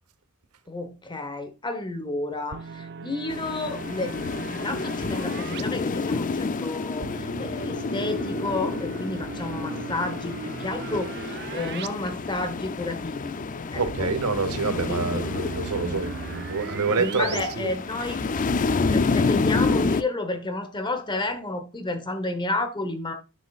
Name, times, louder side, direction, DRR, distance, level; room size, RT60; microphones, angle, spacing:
voice 1, 0.7-13.4 13.7-14.1 14.9-15.2 15.8-16.4 17.0-18.2 18.9-23.1, left 2 dB, 20° left, 1.1 m, -31 dB
sound 1, 2.5-5.6 7.0-11.9 12.2-12.3 13.9-17.4, right 5 dB, 50° right, 0.5 m, -37 dB
Ocean Gran Canaria Tasarte Beach, 3.3-20.0, left 4 dB, 35° left, 0.5 m, -29 dB
voice 2, 13.8-17.7, right 4 dB, 75° right, 1.0 m, -27 dB
10.0 x 6.4 x 2.4 m
head